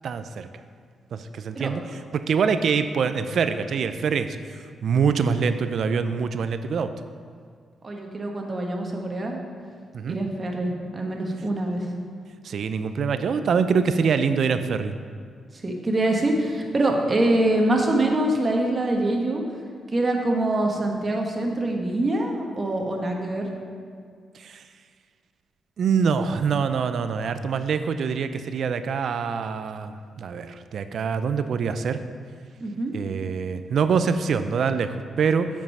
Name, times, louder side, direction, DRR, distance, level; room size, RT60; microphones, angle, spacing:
voice 1, 0.0-0.5 1.1-1.8 2.1-6.9 9.9-10.2 12.4-15.0 24.3-24.6 25.8-32.0 32.9-35.5, right 6 dB, 70° right, 10 dB, 0.5 m, -25 dB
voice 2, 7.8-9.4 10.1-11.9 15.5-19.4 19.9-23.5 32.6-32.9, right 1 dB, 35° right, 1 dB, 1.3 m, -24 dB
7.6 x 5.4 x 5.5 m, 2.1 s
cardioid pair, 70°, 0 cm